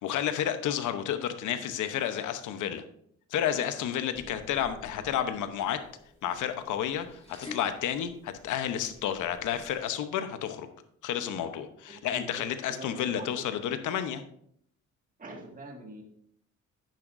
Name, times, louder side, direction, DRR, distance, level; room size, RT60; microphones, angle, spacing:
voice 1, 0.0-2.8 3.3-5.8 6.2-10.7 11.0-14.2, left 10 dB, 80° left, 9 dB, 0.9 m, -31 dB
sound 1, 4.1-9.8, left 2 dB, 20° left, 3.1 m, -50 dB
voice 2, 4.6-5.1 11.9-12.3 12.7-13.8 15.2-16.0, right 2 dB, 25° right, 1 dB, 1.9 m, -45 dB
10.0 x 9.2 x 2.6 m, 0.68 s
cardioid pair, 90°, 30 cm